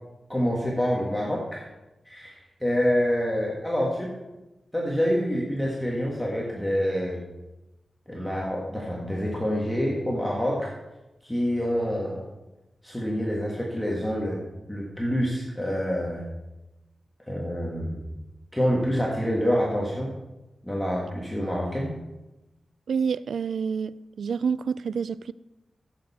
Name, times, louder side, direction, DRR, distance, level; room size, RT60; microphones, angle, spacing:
voice 1, 0.3-1.6 2.0-4.1 4.7-7.2 8.1-10.7 11.2-12.2 12.8-14.4 14.7-16.2 17.3-18.1 18.5-20.1 20.6-21.9, equal, 5° left, 1.6 m, -27 dB
voice 2, 22.9-25.3, right 6 dB, 85° right, 0.3 m, -28 dB
14.0 x 7.8 x 4.3 m
wide cardioid pair, 145°, 0 cm